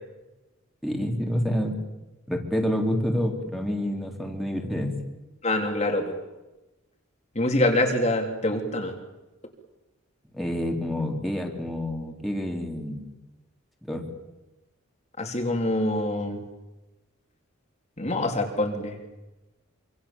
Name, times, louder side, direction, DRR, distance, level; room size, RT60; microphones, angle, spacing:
voice 1, 0.8-1.8 2.3-5.0 10.3-13.1 13.8-14.0, equal, ahead, 2 dB, 3.7 m, -28 dB
voice 2, 5.4-6.1 7.3-9.0 15.2-16.4 18.0-19.0, left 1 dB, 30° left, 3 dB, 3.4 m, -25 dB
27.0 x 26.5 x 7.3 m, 1.0 s
head